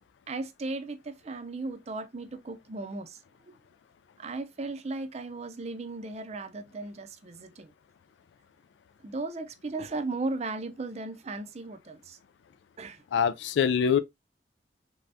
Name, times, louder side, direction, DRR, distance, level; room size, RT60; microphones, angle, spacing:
voice 1, 0.3-3.2 4.2-7.7 9.0-12.2 12.8-13.0, right 3 dB, 35° right, 0.5 m, -36 dB
voice 2, 13.1-14.0, left 7 dB, 85° left, 0.3 m, -24 dB
3.4 x 3.3 x 2.6 m
head